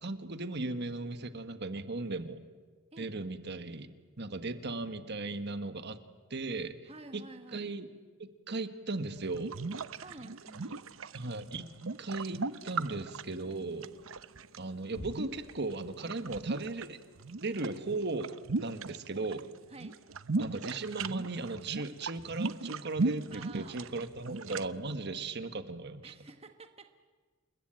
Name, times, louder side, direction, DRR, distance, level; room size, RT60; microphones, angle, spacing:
voice 1, 0.0-2.4 3.0-3.9 4.2-6.0 6.3-6.8 7.1-7.2 7.5-7.9 8.2-9.5 11.1-11.7 12.0-13.9 14.6-17.0 17.4-18.3 18.6-19.5 20.4-26.1, right 3 dB, 55° right, 10 dB, 1.5 m, -37 dB
voice 2, 6.9-7.6 9.9-10.8 19.7-20.0 23.3-23.8 26.0-26.9, right 2 dB, 30° right, 7 dB, 1.2 m, -50 dB
sound 1, 9.2-14.6 15.1-16.9 17.2-19.4 19.7-24.7, right 3 dB, 85° right, 0.8 m, -37 dB
sound 2, 12.2-17.7, left 1 dB, 50° left, 1.6 m, -53 dB
29.0 x 21.0 x 9.0 m, 1.4 s
head